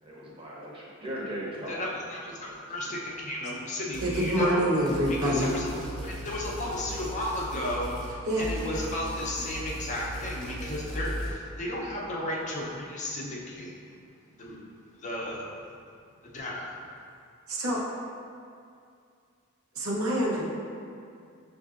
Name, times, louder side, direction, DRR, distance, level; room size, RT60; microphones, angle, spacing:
voice 1, 0.0-2.0 2.2-2.9 3.6-3.8 6.2-6.3, equal, 25° right, -6 dB, 0.8 m, -39 dB
voice 2, 1.7-4.7 5.1-13.7 14.3-14.6 15.0-15.5 16.2-16.8, left 1 dB, 35° left, -4 dB, 0.5 m, -34 dB
sound 1, 3.9-4.5 4.9-8.1 8.4-11.3, right 1 dB, 5° left, 0.8 m, -37 dB
voice 3, 4.0-5.5 8.3-8.4 17.5-17.8 19.8-20.4, equal, 90° right, -4 dB, 0.8 m, -26 dB
6.4 x 2.6 x 2.4 m, 2.4 s
head